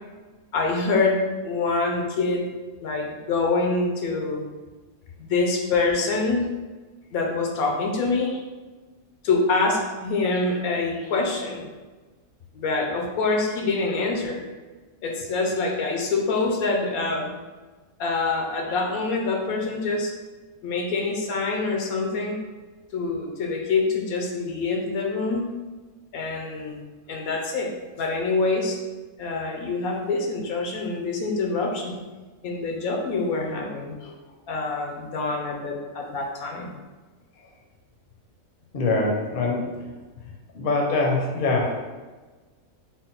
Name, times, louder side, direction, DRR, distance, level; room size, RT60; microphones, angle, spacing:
voice 1, 0.5-2.5 2.8-4.4 5.2-6.5 7.1-8.4 9.2-11.7 12.5-14.4 15.0-17.3 18.0-20.1 20.6-22.4 22.9-25.4 26.1-26.8 27.1-27.7 28.0-28.8 29.2-32.0 32.4-34.1 34.5-36.7, left 3 dB, 85° left, 1 dB, 1.1 m, -25 dB
voice 2, 38.7-39.7 40.5-41.9, left 3 dB, 50° left, -1 dB, 0.7 m, -23 dB
3.8 x 2.2 x 4.1 m, 1.3 s
omnidirectional pair, 1.5 m